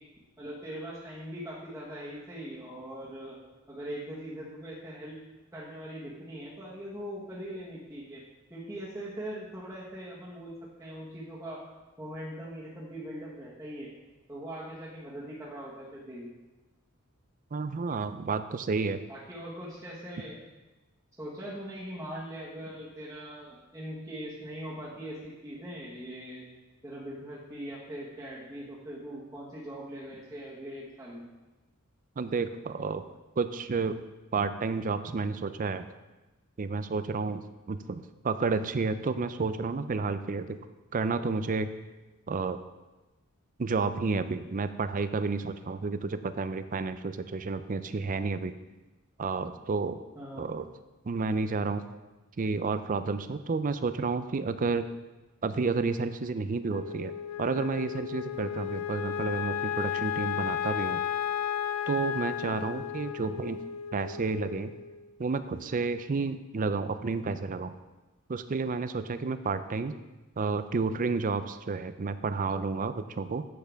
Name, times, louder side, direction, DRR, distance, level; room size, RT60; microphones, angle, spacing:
voice 1, 0.4-3.4 3.7-5.2 5.5-8.2 8.5-11.6 12.0-13.9 14.3-16.3 19.1-20.4 21.2-26.4 26.8-31.3 50.1-50.5 62.4-62.8, equal, 15° right, -10 dB, 1.5 m, -41 dB
voice 2, 17.5-19.0 32.2-33.0 33.4-34.0 34.3-35.8 36.6-40.6 40.9-41.7 42.3-42.6 43.6-48.5 49.2-50.0 50.4-50.7 51.0-51.8 52.4-54.9 55.4-61.0 61.9-63.6 63.9-64.7 65.2-67.7 68.3-69.9 70.4-73.5, right 4 dB, 40° right, 11 dB, 0.4 m, -31 dB
Wind instrument woodwind instrument, 56.7-65.1, left 9 dB, 85° left, 0.6 m, -34 dB
10.0 x 7.7 x 3.5 m, 1.1 s
head